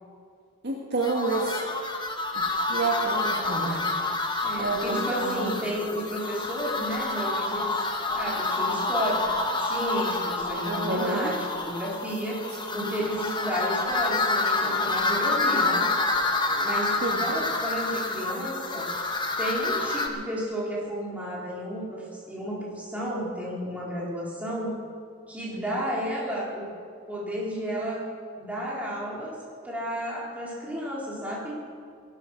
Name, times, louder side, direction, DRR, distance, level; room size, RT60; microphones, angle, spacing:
voice 1, 0.6-1.6 2.3-3.9 4.6-5.5 10.7-11.3 12.8-12.9 17.0-17.2 25.5-25.8, right 3 dB, 50° right, -1 dB, 1.9 m, -29 dB
sound 1, 1.0-20.1, left 3 dB, 20° left, 1.2 m, -28 dB
voice 2, 4.4-7.8 8.1-12.5 12.7-15.9 16.6-18.9 19.4-24.8 25.3-26.7 27.1-28.1 28.4-31.6, equal, 5° right, -5 dB, 4.1 m, -32 dB
18.5 x 12.0 x 6.1 m, 2.2 s
head